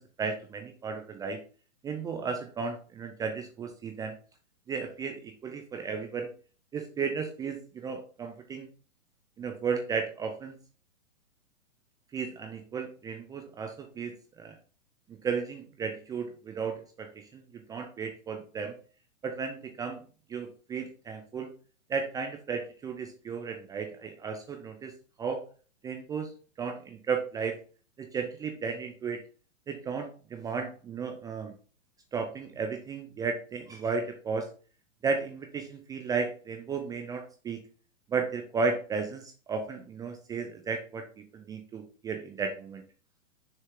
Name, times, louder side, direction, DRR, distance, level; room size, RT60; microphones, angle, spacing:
voice 1, 0.0-1.4 1.8-4.2 4.7-6.3 6.7-8.7 9.4-10.6 12.1-14.6 15.2-17.4 17.7-18.8 19.2-20.0 20.3-21.5 21.9-24.9 25.2-25.4 25.8-26.3 26.6-27.6 28.0-29.2 29.7-31.5 32.1-34.5 35.0-37.6 38.1-42.8, right 5 dB, 10° right, 5 dB, 0.5 m, -34 dB
6.6 x 5.4 x 3.6 m, 0.38 s
hypercardioid pair, 120°, 39 cm